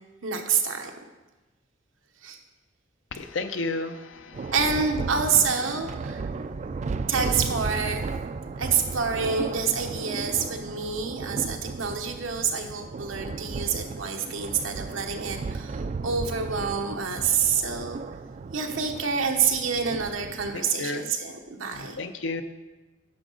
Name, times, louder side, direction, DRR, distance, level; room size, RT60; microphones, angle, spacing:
voice 1, 0.2-0.9 2.2-2.4 4.5-6.3 7.1-8.0 8.5-18.0 18.5-22.0, right 6 dB, 90° right, 4 dB, 1.0 m, -27 dB
voice 2, 3.1-4.5 20.5-21.0 21.7-22.4, left 3 dB, 70° left, 9 dB, 0.6 m, -32 dB
Thunder, 4.3-20.6, right 4 dB, 35° right, 0.3 m, -35 dB
9.8 x 6.4 x 3.9 m, 1.1 s
head